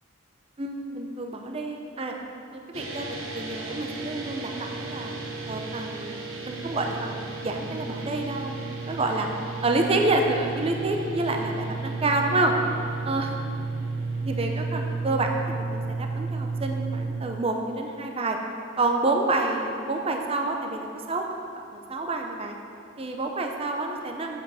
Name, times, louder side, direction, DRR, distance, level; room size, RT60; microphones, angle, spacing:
voice 1, 0.6-2.2 2.5-3.1 3.3-5.2 5.5-9.3 9.6-12.5 13.0-13.4 14.0-18.4 18.8-21.2 21.9-22.5 23.0-24.4, right 2 dB, 30° right, 3 dB, 0.6 m, -28 dB
sound 1, 2.7-17.1, right 3 dB, 90° right, 1.3 m, -33 dB
7.9 x 7.8 x 5.6 m, 2.4 s
head